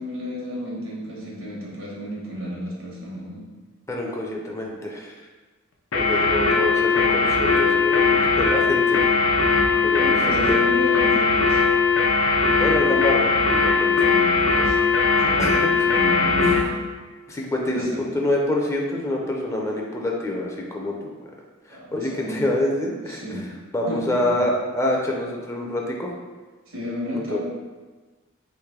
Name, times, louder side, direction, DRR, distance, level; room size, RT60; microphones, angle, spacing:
voice 1, 0.0-3.5 10.0-11.6 14.0-14.8 15.1-16.7 17.7-18.0 21.7-22.4 23.1-23.5 23.9-24.4 26.7-27.4, left 1 dB, 85° right, -4 dB, 1.2 m, -32 dB
voice 2, 3.9-5.1 6.0-9.0 9.8-10.2 10.5-10.6 12.6-14.1 15.4-15.9 17.3-21.3 21.7-23.4 23.7-26.1 27.1-27.4, left 1 dB, 15° left, -1 dB, 0.4 m, -26 dB
sound 1, 5.9-16.7, left 4 dB, 85° left, 0.6 m, -19 dB
3.2 x 3.0 x 3.6 m, 1.3 s
head